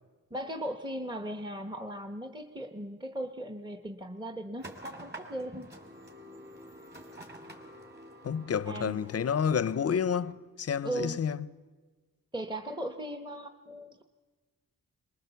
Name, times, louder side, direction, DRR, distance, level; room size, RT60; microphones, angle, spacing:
voice 1, 0.3-5.7 8.7-9.0 10.8-11.2 12.3-14.0, right 1 dB, 10° right, 0.9 m, -38 dB
sound 1, 4.6-10.3, equal, 30° right, 2.7 m, -48 dB
voice 2, 8.2-11.4, left 7 dB, 45° left, 0.6 m, -29 dB
23.0 x 20.5 x 7.0 m
wide cardioid pair, 90°, 36 cm